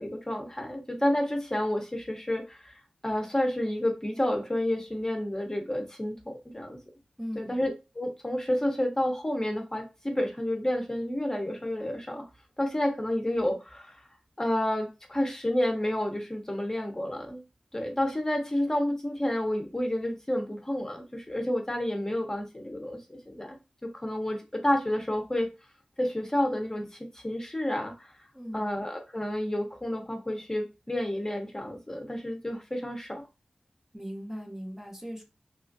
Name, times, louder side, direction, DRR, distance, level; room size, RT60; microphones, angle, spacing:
voice 1, 0.0-2.8 3.0-6.8 7.4-12.2 12.6-14.0 14.4-17.4 17.7-23.6 23.8-25.5 26.0-26.9 27.1-28.1 28.5-33.2, left 1 dB, 25° left, 0.7 m, -30 dB
voice 2, 7.2-7.6 28.3-28.7 33.9-35.2, equal, 15° right, 0.7 m, -38 dB
3.0 x 2.4 x 2.6 m
cardioid pair, 45°, 2 cm